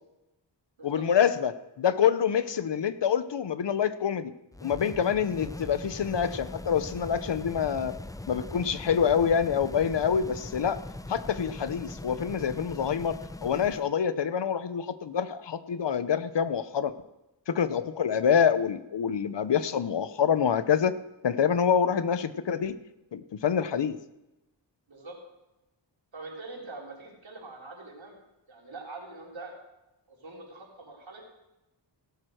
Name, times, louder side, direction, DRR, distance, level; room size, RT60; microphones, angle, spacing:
voice 1, 0.8-4.3 4.6-8.0 8.3-10.8 11.1-16.9 17.5-21.0 21.2-22.7 23.1-24.0, left 7 dB, 70° left, 13 dB, 0.8 m, -26 dB
sound 1, 4.5-13.9, left 1 dB, 10° left, 0.4 m, -41 dB
voice 2, 26.1-28.2 28.5-29.5 30.1-31.2, right 3 dB, 80° right, -2 dB, 4.0 m, -43 dB
17.0 x 7.8 x 6.4 m, 0.96 s
wide cardioid pair, 85°, 45 cm